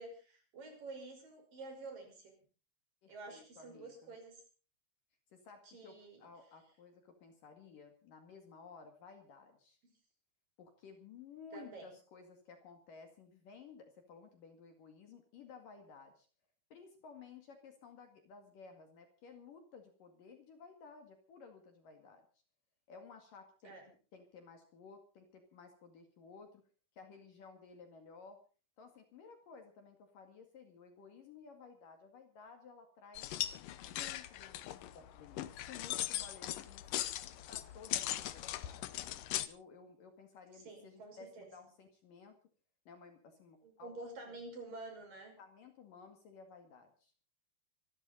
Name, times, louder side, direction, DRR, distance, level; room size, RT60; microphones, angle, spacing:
voice 1, 0.0-2.3 3.1-4.4 5.6-6.3 9.8-9.9 11.5-11.9 23.6-23.9 40.5-41.7 43.6-45.4, right 3 dB, 50° right, 3 dB, 7.0 m, -49 dB
voice 2, 3.0-4.1 5.3-9.8 10.6-16.3 16.7-22.2 22.9-26.6 27.0-28.4 28.8-33.3 33.8-37.1 37.5-39.0 39.4-42.4 42.9-44.0 44.2-44.3 45.4-47.1, left 5 dB, 55° left, 6 dB, 3.3 m, -56 dB
sound 1, 33.1-39.5, left 13 dB, 85° left, 1.9 m, -39 dB
26.0 x 12.5 x 4.0 m, 0.37 s
omnidirectional pair, 5.2 m